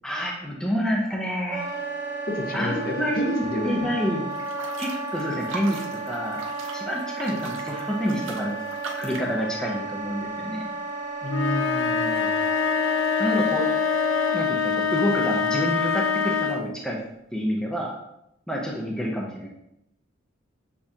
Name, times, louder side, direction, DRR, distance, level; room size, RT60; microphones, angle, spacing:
voice 1, 0.0-1.6 2.5-4.3 4.8-6.4 6.7-8.6 9.0-10.7 13.2-13.7 14.3-17.0 17.3-17.9 18.5-19.5, equal, 5° left, -3 dB, 0.5 m, -28 dB
Wind instrument woodwind instrument, 1.5-14.4, right 3 dB, 35° right, 1.5 m, -33 dB
voice 2, 2.3-3.9 11.2-12.4, left 1 dB, 50° left, 1 dB, 0.7 m, -30 dB
sound 1, 4.3-9.3, right 4 dB, 75° right, 0.6 m, -40 dB
sound 2, 11.3-16.7, left 6 dB, 70° left, 0.4 m, -24 dB
6.9 x 2.4 x 2.7 m, 0.81 s
head